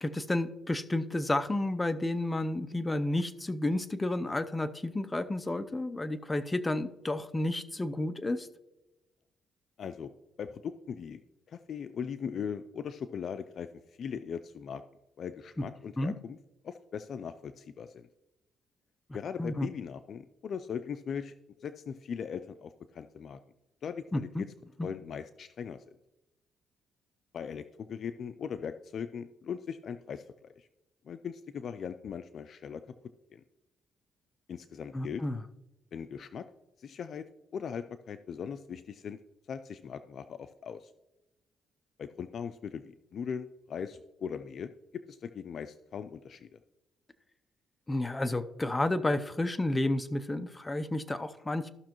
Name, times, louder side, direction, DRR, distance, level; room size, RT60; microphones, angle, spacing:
voice 1, 0.0-8.5 16.0-16.1 19.4-19.7 24.1-24.4 24.8-24.9 34.9-35.4 47.9-51.7, left 1 dB, 15° left, 12 dB, 0.6 m, -31 dB
voice 2, 9.8-10.1 10.4-11.2 11.5-14.8 15.2-16.4 16.6-18.1 19.1-21.3 21.6-23.4 23.8-24.5 24.8-25.9 27.3-30.7 31.0-32.8 33.3-33.4 34.5-35.2 35.9-36.5 36.8-37.2 37.5-39.2 39.5-40.9 42.0-44.7 45.1-46.5, left 7 dB, 60° left, 11 dB, 0.4 m, -39 dB
14.0 x 6.1 x 3.0 m, 0.96 s
cardioid pair, 90°, 0 cm